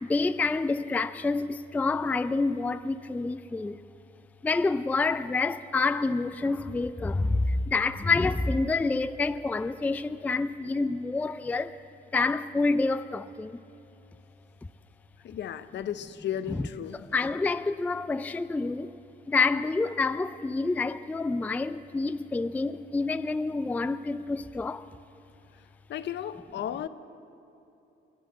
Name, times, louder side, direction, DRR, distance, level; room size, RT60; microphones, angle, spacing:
voice 1, 0.0-3.8 4.4-11.8 12.1-13.6 16.5-16.7 17.1-19.0 19.3-24.9, left 3 dB, 10° left, 0.3 m, -28 dB
voice 2, 15.2-17.1 25.9-26.9, left 10 dB, 65° left, 0.7 m, -34 dB
21.5 x 8.1 x 7.7 m
cardioid pair, 90°, 20 cm